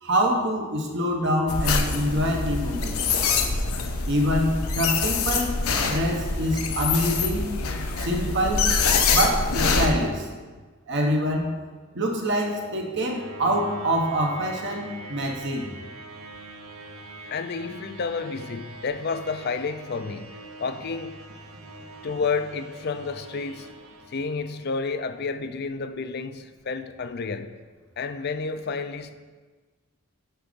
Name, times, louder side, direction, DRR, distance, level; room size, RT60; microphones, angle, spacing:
voice 1, 0.0-3.0 4.1-5.6 5.8-7.5 8.0-8.7 9.1-10.3 10.9-11.5 11.9-15.7, equal, 55° right, 2 dB, 1.2 m, -25 dB
sound 1, 1.5-9.9, left 4 dB, 90° left, 0.9 m, -25 dB
sound 2, 11.8-24.8, right 2 dB, 75° right, 1.0 m, -43 dB
voice 2, 17.3-20.3 20.6-21.2 22.0-23.7 24.1-27.5 28.0-29.1, left 4 dB, 50° left, 10 dB, 0.5 m, -30 dB
10.5 x 3.9 x 5.2 m, 1.4 s
head